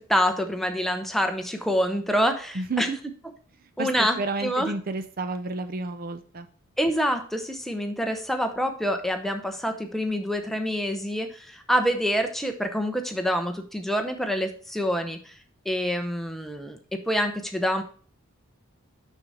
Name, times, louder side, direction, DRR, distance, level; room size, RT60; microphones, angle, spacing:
voice 1, 0.1-2.9 3.8-4.7 6.8-15.3 15.6-17.8, equal, ahead, 5 dB, 0.8 m, -26 dB
voice 2, 2.5-3.0 3.8-6.5, right 3 dB, 40° right, 10 dB, 0.6 m, -31 dB
6.7 x 6.4 x 4.1 m, 0.43 s
head